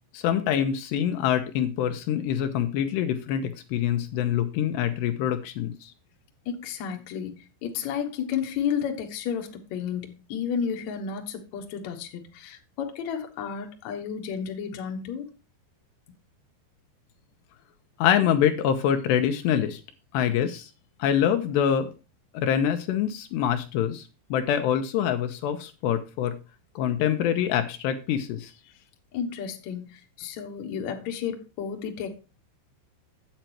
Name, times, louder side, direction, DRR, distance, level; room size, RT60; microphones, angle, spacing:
voice 1, 0.1-5.9 18.0-19.8 20.1-20.7 21.0-21.9 22.3-26.4 26.8-28.5, left 9 dB, 80° left, 7 dB, 2.7 m, -25 dB
voice 2, 6.5-7.3 7.6-15.3 29.1-32.1, left 7 dB, 65° left, 3 dB, 1.8 m, -32 dB
9.0 x 8.0 x 4.4 m, 0.31 s
omnidirectional pair, 5.2 m